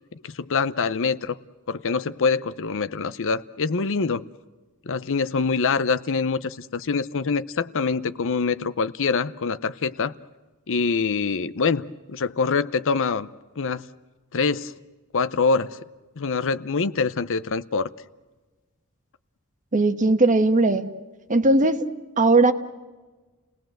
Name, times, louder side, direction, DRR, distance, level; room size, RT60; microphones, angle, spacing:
voice 1, 0.2-1.4 1.7-4.3 4.9-10.1 10.7-13.3 13.6-13.8 14.3-14.7 15.1-15.8 16.2-17.9, left 4 dB, 60° left, 15 dB, 0.7 m, -25 dB
voice 2, 19.7-20.9 21.3-21.8 22.2-22.5, right 2 dB, 35° right, 9 dB, 1.3 m, -18 dB
30.0 x 18.5 x 7.7 m, 1.3 s
head